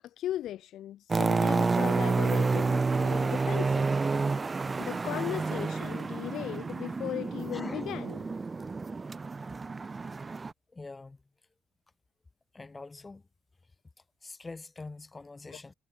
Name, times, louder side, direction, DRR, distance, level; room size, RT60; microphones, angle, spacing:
voice 1, 0.0-3.9 4.8-8.3 15.5-15.6, left 12 dB, 75° left, 1.1 m, -37 dB
sound 1, 1.1-10.5, right 4 dB, 20° right, 1.3 m, -29 dB
voice 2, 7.5-7.9 10.7-11.2 12.5-13.2 14.2-15.7, left 3 dB, 15° left, 3.1 m, -45 dB
cardioid pair, 165°, 0 cm